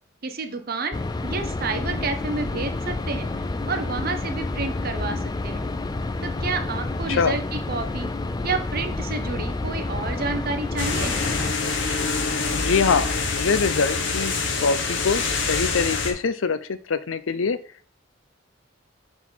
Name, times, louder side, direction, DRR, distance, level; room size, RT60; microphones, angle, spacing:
voice 1, 0.2-1.0 1.2-5.7 6.2-8.1 8.4-11.2, right 4 dB, 50° right, 7 dB, 0.9 m, -30 dB
sound 1, 0.9-11.5, left 2 dB, 20° left, 0.4 m, -29 dB
sound 2, 10.8-16.1, left 4 dB, 65° left, 1.1 m, -25 dB
voice 2, 12.6-14.3 14.6-17.6, left 5 dB, 85° left, 14 dB, 0.6 m, -24 dB
7.3 x 4.0 x 4.0 m, 0.44 s
head